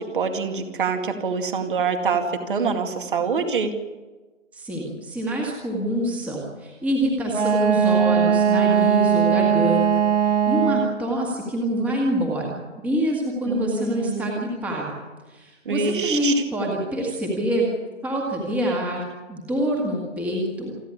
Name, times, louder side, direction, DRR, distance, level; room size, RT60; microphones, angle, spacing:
voice 1, 0.1-3.7 13.5-14.4 15.7-16.3, right 5 dB, 40° right, 5 dB, 2.3 m, -25 dB
voice 2, 4.5-10.0 10.5-12.5 12.8-14.9 15.3-17.7 18.0-19.0 19.3-20.7, equal, 5° right, -2 dB, 1.9 m, -26 dB
Wind instrument woodwind instrument, 7.3-11.0, right 7 dB, 60° right, 5.7 m, -19 dB
27.5 x 10.0 x 9.8 m, 1.2 s
figure-of-eight pair, 155°, 39 cm